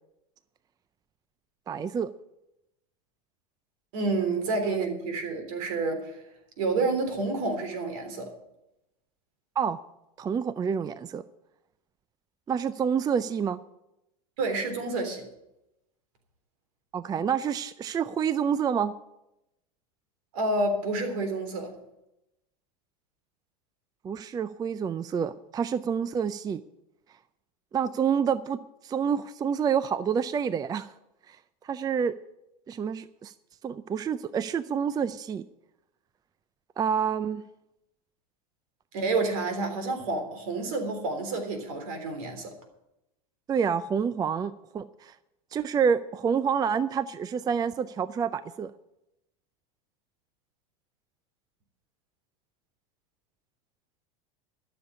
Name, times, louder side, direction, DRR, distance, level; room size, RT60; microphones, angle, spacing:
voice 1, 1.7-2.1 9.6-9.8 10.2-11.2 12.5-13.6 16.9-18.9 24.0-26.6 27.7-30.9 31.3-31.4 31.6-32.1 32.7-33.3 33.6-35.4 36.8-37.4 43.5-45.1 45.5-48.7, right 7 dB, 20° right, 0.4 m, -28 dB
voice 2, 3.9-6.2 6.6-8.3 14.4-15.2 20.3-21.7 38.9-42.5, right 3 dB, 70° right, 3.5 m, -29 dB
13.0 x 7.0 x 9.5 m
hypercardioid pair, 110°, 19 cm